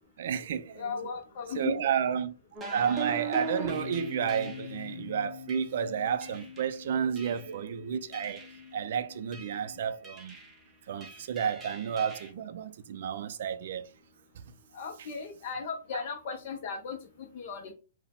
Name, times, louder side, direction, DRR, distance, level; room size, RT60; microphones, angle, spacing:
voice 1, 0.2-1.1 1.5-2.3 2.7-8.4 8.7-10.4 10.9-13.9 14.3-14.4 15.9-16.0, right 8 dB, 55° right, 0.4 m, -31 dB
voice 2, 0.7-1.8 14.7-17.7, left 5 dB, 40° left, 0.6 m, -37 dB
sound 1, 2.5-4.8 5.5-5.7 6.2-6.7 7.2-7.6 8.1-8.7 9.3-9.6 10.0-10.6 11.0-12.3, right 3 dB, 10° right, 0.7 m, -40 dB
sound 2, 3.6-9.9, left 7 dB, 80° left, 0.8 m, -45 dB
4.5 x 2.1 x 3.5 m
hypercardioid pair, 165°, 0 cm